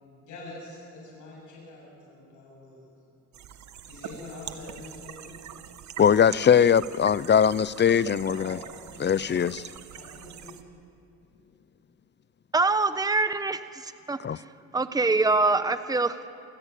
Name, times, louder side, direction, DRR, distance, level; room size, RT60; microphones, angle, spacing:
voice 1, 0.2-2.9 3.9-5.4 8.3-8.7 8.9-9.3 10.0-10.6, left 2 dB, 80° left, -3 dB, 7.9 m, -45 dB
sound 1, 3.3-10.6, right 9 dB, 65° right, 1.4 m, -44 dB
voice 2, 6.0-8.6 9.0-9.6 14.2-14.4, left 8 dB, 35° left, 19 dB, 0.6 m, -21 dB
voice 3, 12.5-14.4 14.7-16.3, right 3 dB, 10° right, 11 dB, 1.0 m, -25 dB
28.5 x 16.0 x 8.5 m, 2.6 s
cardioid pair, 90°, 30 cm